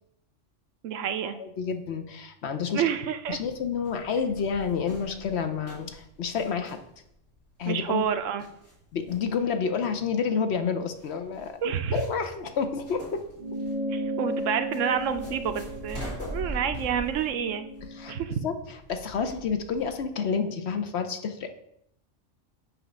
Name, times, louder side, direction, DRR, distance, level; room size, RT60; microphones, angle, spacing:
voice 1, 0.8-1.4 2.7-3.4 7.7-8.5 11.6-12.0 13.9-17.7 18.1-18.4, right 8 dB, 75° right, 10 dB, 1.0 m, -29 dB
voice 2, 1.4-2.8 3.3-6.8 7.6-8.0 8.9-13.2 17.9-21.5, left 6 dB, 60° left, 7 dB, 0.9 m, -29 dB
sound 1, 3.3-20.0, equal, 85° left, 2.9 m, -43 dB
sound 2, 13.4-18.2, equal, 45° right, 0.5 m, -35 dB
7.9 x 3.1 x 6.0 m, 0.75 s
omnidirectional pair, 1.3 m